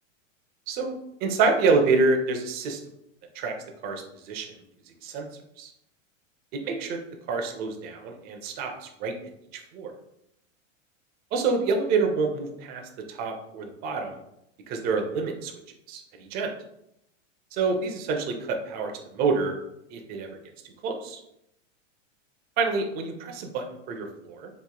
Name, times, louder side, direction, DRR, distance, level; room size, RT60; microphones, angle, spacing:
voice 1, 0.7-2.8 3.4-3.5 3.8-4.5 5.0-5.3 5.6-5.7 6.6-7.0 7.3-8.7 9.0-9.1 9.7-9.9 11.3-12.8 13.1-14.2 14.7-15.5 15.9-16.5 17.5-19.5 19.9-20.3 20.8-21.2 22.6-24.5, right 4 dB, 25° right, 3 dB, 0.4 m, -27 dB
2.9 x 2.4 x 3.6 m, 0.80 s
supercardioid pair, 130°, 38 cm